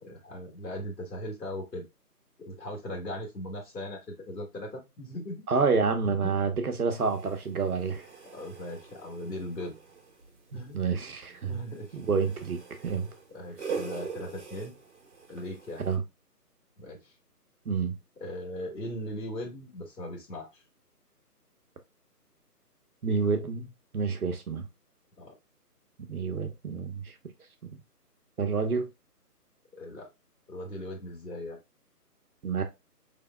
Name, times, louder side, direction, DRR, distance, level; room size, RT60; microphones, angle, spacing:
voice 1, 0.0-1.8 2.4-5.4 6.0-6.4 8.3-9.7 10.5-10.8 11.5-12.0 12.2-12.3 13.3-14.7 15.3-15.8 16.8-17.1 18.2-20.6 25.2-25.4 29.7-30.1 30.5-31.6, left 1 dB, 85° left, 1.7 m, -39 dB
voice 2, 5.5-8.1 10.5-11.6 11.9-13.1 15.8-16.0 17.6-18.0 23.0-24.7 26.1-27.1 28.4-28.9 32.4-32.6, right 5 dB, 65° right, 1.0 m, -28 dB
sound 1, 6.9-16.0, right 6 dB, 45° right, 1.1 m, -43 dB
4.0 x 3.4 x 2.2 m
figure-of-eight pair, 165°, 48 cm